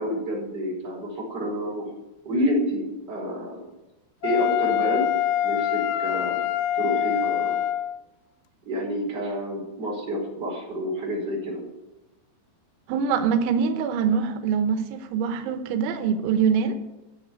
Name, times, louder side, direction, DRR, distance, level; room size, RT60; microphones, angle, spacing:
voice 1, 0.0-1.9 2.2-3.6 4.2-5.1 5.4-7.6 8.6-11.6, equal, 25° right, -2 dB, 4.8 m, -29 dB
Wind instrument woodwind instrument, 4.2-8.0, left 11 dB, 80° left, 2.8 m, -25 dB
voice 2, 12.9-16.8, right 6 dB, 90° right, 8 dB, 3.4 m, -24 dB
14.0 x 7.6 x 9.5 m, 0.99 s
omnidirectional pair, 5.3 m